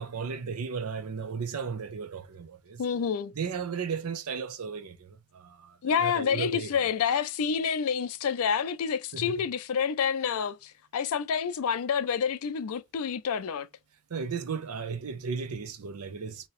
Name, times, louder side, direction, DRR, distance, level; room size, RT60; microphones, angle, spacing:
voice 1, 0.0-2.8 3.4-6.7 9.1-9.4 14.1-16.5, right 5 dB, 85° right, 0.5 m, -35 dB
voice 2, 2.8-3.3 5.8-13.7, left 7 dB, 75° left, 0.4 m, -28 dB
2.9 x 2.8 x 3.0 m
head